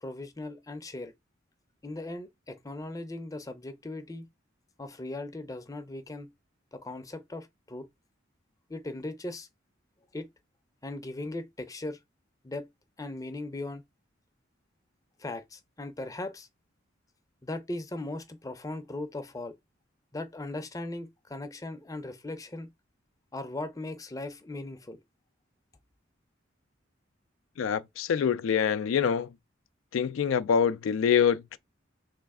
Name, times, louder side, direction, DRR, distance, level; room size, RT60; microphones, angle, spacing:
voice 1, 0.0-1.1 1.8-4.3 4.8-6.3 6.7-7.9 8.7-9.5 10.1-10.3 10.8-12.0 12.4-12.7 13.0-13.8 15.2-16.5 17.4-19.5 20.1-22.7 23.3-25.0, left 2 dB, 15° left, 0.5 m, -38 dB
voice 2, 27.6-29.3 29.9-31.6, left 7 dB, 80° left, 0.3 m, -25 dB
3.2 x 3.1 x 3.5 m
head